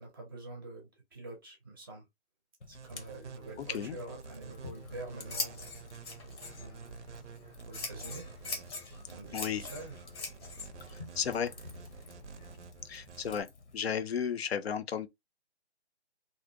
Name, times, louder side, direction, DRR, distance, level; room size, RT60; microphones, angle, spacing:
voice 1, 0.0-2.1 2.7-5.6 6.4-7.1 7.7-8.3 8.8-10.0, right 2 dB, 20° right, 0.6 m, -46 dB
Fire, 2.6-13.8, left 3 dB, 90° left, 0.9 m, -55 dB
sound 1, 2.7-13.4, right 6 dB, 80° right, 0.6 m, -50 dB
voice 2, 3.6-4.0 9.3-9.6 10.9-11.5 12.8-13.5 13.7-15.1, left 8 dB, 65° left, 0.5 m, -34 dB
Scissors, 4.4-12.6, left 3 dB, 25° left, 0.6 m, -43 dB
2.5 x 2.1 x 2.5 m
figure-of-eight pair, 150°, 34 cm